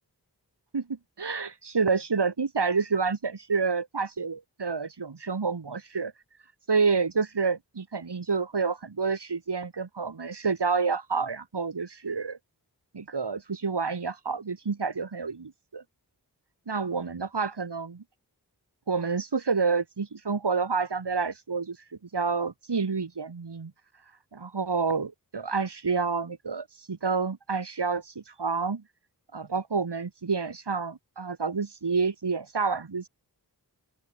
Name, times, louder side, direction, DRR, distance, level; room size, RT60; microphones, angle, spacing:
voice 1, 0.7-6.1 6.7-12.4 12.9-15.8 16.7-18.0 18.9-21.8 22.1-23.7 24.3-28.8 29.3-33.1, right 5 dB, 90° right, 7.8 m, -29 dB
open air
wide cardioid pair, 65°, 40 cm